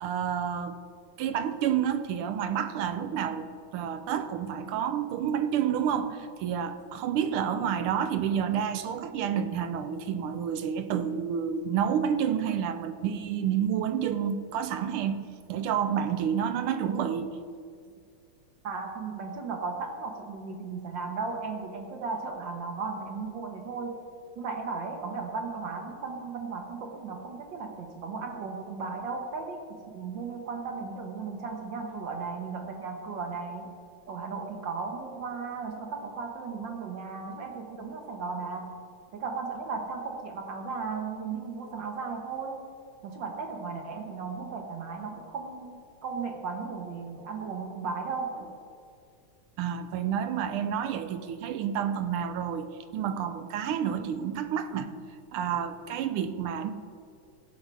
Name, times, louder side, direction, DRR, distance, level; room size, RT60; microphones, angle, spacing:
voice 1, 0.0-0.8 1.2-15.2 15.5-17.4 49.6-54.9 55.3-56.7, right 8 dB, 90° right, 10 dB, 1.5 m, -29 dB
voice 2, 18.6-24.0 24.4-33.7 34.1-38.8 39.1-42.6 43.0-48.5, right 4 dB, 65° right, 2 dB, 1.6 m, -36 dB
15.5 x 5.5 x 4.7 m, 2.2 s
omnidirectional pair, 2.3 m